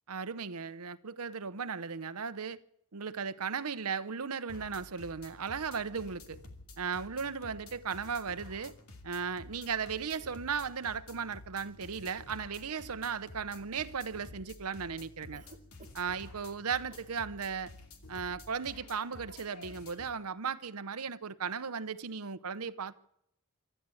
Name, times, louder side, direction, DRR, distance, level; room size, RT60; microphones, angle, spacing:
voice 1, 0.1-2.6 2.9-6.4 6.8-8.7 9.0-15.4 15.9-17.7 18.1-22.9, right 6 dB, 85° right, 0.9 m, -36 dB
sound 1, 4.5-20.1, left 2 dB, 80° left, 2.7 m, -51 dB
Cough, 15.3-16.2 16.9-17.2 18.1-18.4 18.6-18.9, right 3 dB, 35° right, 1.7 m, -56 dB
25.5 x 13.0 x 8.5 m
head